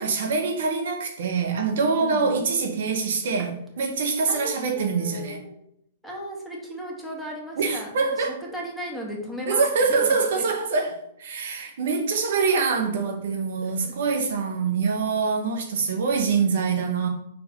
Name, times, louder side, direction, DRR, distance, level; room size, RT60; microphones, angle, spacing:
voice 1, 0.0-5.4 7.6-8.4 9.5-17.1, right 5 dB, 65° right, 1.1 m, -24 dB
voice 2, 2.0-2.4 3.4-3.5 4.3-5.5 6.0-8.3 8.5-10.1 10.4-10.5 13.6-13.9, equal, 5° left, 2.0 m, -36 dB
4.5 x 4.2 x 5.4 m
hypercardioid pair, 115°, 0 cm